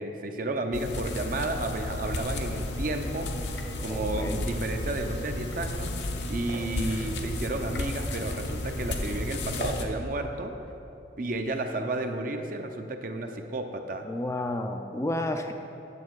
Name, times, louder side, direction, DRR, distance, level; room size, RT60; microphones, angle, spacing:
voice 1, 0.0-3.3 3.8-6.0 6.3-10.5 11.2-14.1, right 2 dB, 50° right, 5 dB, 0.7 m, -32 dB
sound 1, 0.7-9.8, left 1 dB, 75° left, 0.9 m, -33 dB
voice 2, 3.9-4.4 14.0-15.5, left 1 dB, 15° left, 5 dB, 0.4 m, -31 dB
9.6 x 7.4 x 4.7 m, 2.8 s
head